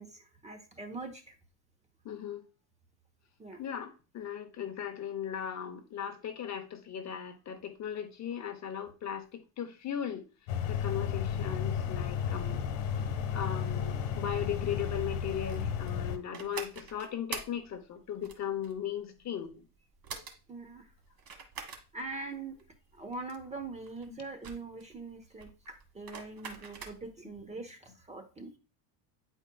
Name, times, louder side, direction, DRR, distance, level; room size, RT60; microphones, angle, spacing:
voice 1, 0.0-1.3 3.4-3.6 20.5-20.9 21.9-22.6 22.9-28.5, right 3 dB, 15° right, 1.0 m, -43 dB
voice 2, 2.0-2.4 3.6-10.3 10.7-12.6 13.3-19.6, left 9 dB, 35° left, 0.8 m, -37 dB
sound 1, 10.5-16.2, left 7 dB, 65° left, 1.3 m, -33 dB
sound 2, 14.8-27.3, right 5 dB, 45° right, 1.6 m, -45 dB
9.6 x 4.5 x 2.3 m
cardioid pair, 125°, 48 cm